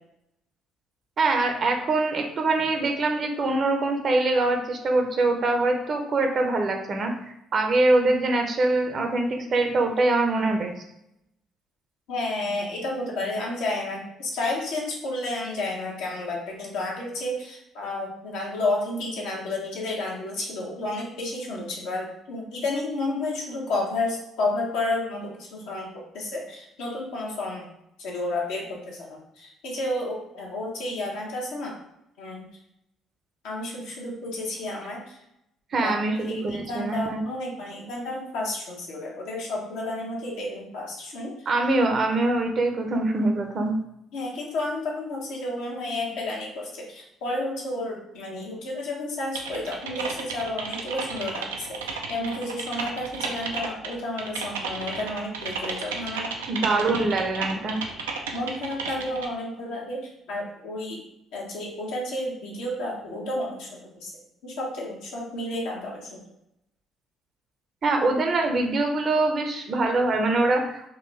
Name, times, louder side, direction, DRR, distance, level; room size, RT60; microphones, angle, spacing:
voice 1, 1.2-10.7 35.7-37.2 41.5-43.8 56.5-57.8 67.8-70.9, right 2 dB, 50° right, 4 dB, 0.7 m, -24 dB
voice 2, 12.1-27.6 28.0-31.8 32.2-32.4 33.4-35.0 35.8-35.9 36.2-41.3 44.1-56.3 58.3-60.0 60.3-61.0 61.3-64.1 64.4-66.2, left 2 dB, 70° left, -3 dB, 0.9 m, -31 dB
Typing, 49.3-59.3, right 4 dB, 80° right, 0.3 m, -33 dB
3.7 x 2.5 x 3.1 m, 0.81 s
hypercardioid pair, 50°, 0 cm